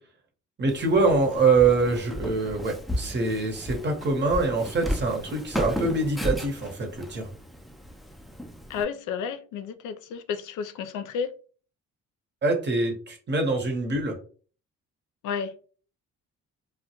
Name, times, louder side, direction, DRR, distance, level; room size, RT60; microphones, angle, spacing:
voice 1, 0.6-7.3 12.4-14.2, right 3 dB, 35° right, 0.9 m, -24 dB
Walk footsteps, 0.7-8.8, equal, ahead, 0.4 m, -34 dB
voice 2, 8.7-11.3 15.2-15.5, left 6 dB, 80° left, 0.5 m, -31 dB
2.1 x 2.1 x 2.8 m
cardioid pair, 90°, 30 cm